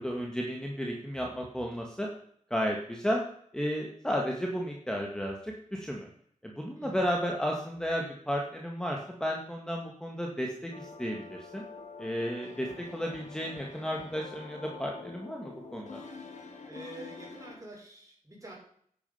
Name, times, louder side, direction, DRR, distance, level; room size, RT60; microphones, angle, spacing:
voice 1, 0.0-2.1 2.5-3.2 3.5-6.1 6.4-11.6 12.0-16.0, equal, 5° left, 0 dB, 1.8 m, -33 dB
sound 1, 10.7-17.6, left 4 dB, 65° left, 2.3 m, -47 dB
voice 2, 16.6-18.5, right 1 dB, 25° right, -2 dB, 5.7 m, -47 dB
11.0 x 8.7 x 5.6 m, 0.64 s
wide cardioid pair, 80°, 13 cm